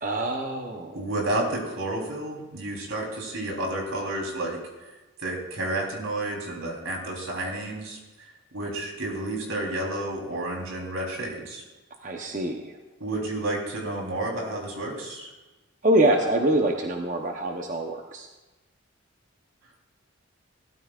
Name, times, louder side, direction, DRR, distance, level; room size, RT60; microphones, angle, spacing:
voice 1, 0.0-1.0 12.0-12.7 15.8-18.3, right 1 dB, 40° right, 2 dB, 0.8 m, -25 dB
voice 2, 0.9-4.6 5.2-8.0 8.5-11.6 13.0-15.3, right 1 dB, 85° right, -1 dB, 3.5 m, -31 dB
17.0 x 13.0 x 2.4 m, 1.1 s
head